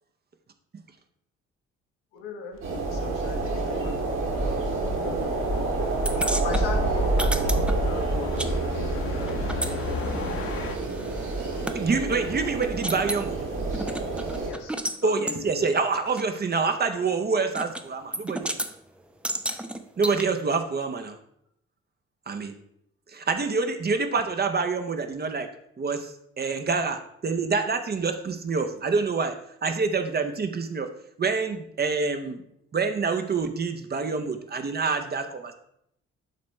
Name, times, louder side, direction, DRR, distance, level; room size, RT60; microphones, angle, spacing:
voice 1, 2.1-3.9 4.5-4.6 5.0-5.3 6.3-11.1 14.5-14.7 15.0-15.7, left 5 dB, 65° left, 2 dB, 1.2 m, -39 dB
sound 1, 2.6-2.7 5.3-10.8, left 5 dB, 35° left, 1.0 m, -36 dB
sound 2, 2.6-14.5, right 2 dB, 60° right, 2.5 m, -28 dB
voice 2, 3.5-4.0 4.3-6.2 7.1-7.8 11.3-11.6, right 2 dB, 80° right, -3 dB, 1.8 m, -45 dB
sound 3, 6.1-8.5 8.8-11.8 12.2-12.3 12.6-13.3 13.7-15.0 15.3-15.4 16.2-16.3 17.6-17.9 18.1-18.7 19.2-20.2, right 1 dB, 5° right, 0.5 m, -32 dB
voice 3, 11.7-13.4 15.0-18.6 20.0-21.2 22.3-22.5 23.1-25.5 25.8-29.3 29.6-30.9 31.2-32.4 32.7-35.5, right 4 dB, 25° right, 7 dB, 0.8 m, -26 dB
11.5 x 4.2 x 3.2 m, 0.72 s
figure-of-eight pair, 45°, 38 cm